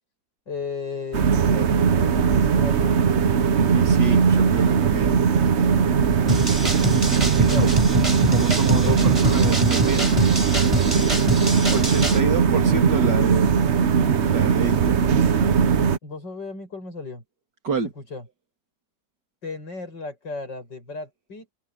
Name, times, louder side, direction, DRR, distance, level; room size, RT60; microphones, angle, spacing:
voice 1, 0.5-3.3 7.4-7.7 8.6-9.0 16.0-17.2 18.0-18.2 19.4-21.5, left 4 dB, 75° left, 8.0 m, -35 dB
sound 1, 1.1-16.0, right 6 dB, 50° right, 1.0 m, -19 dB
voice 2, 3.7-5.2 7.4-7.9 8.3-10.2 11.7-13.6 14.2-15.1 17.6-17.9, right 5 dB, 65° right, 3.7 m, -28 dB
sound 2, 6.3-12.2, right 1 dB, 15° right, 5.4 m, -25 dB
omnidirectional pair, 2.0 m